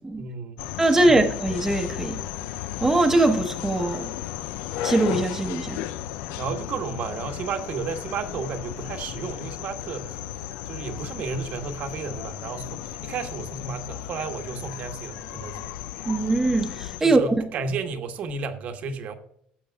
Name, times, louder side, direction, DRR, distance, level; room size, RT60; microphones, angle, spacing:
voice 1, 0.2-1.3 6.4-15.7 17.0-19.1, right 5 dB, 55° right, 1.2 m, -33 dB
sound 1, 0.6-17.0, left 12 dB, 85° left, 0.4 m, -35 dB
voice 2, 0.8-2.2 2.8-4.1 4.8-5.8 16.1-17.2, right 2 dB, 10° right, 0.9 m, -21 dB
16.5 x 7.0 x 2.3 m
cardioid pair, 120°, 3 cm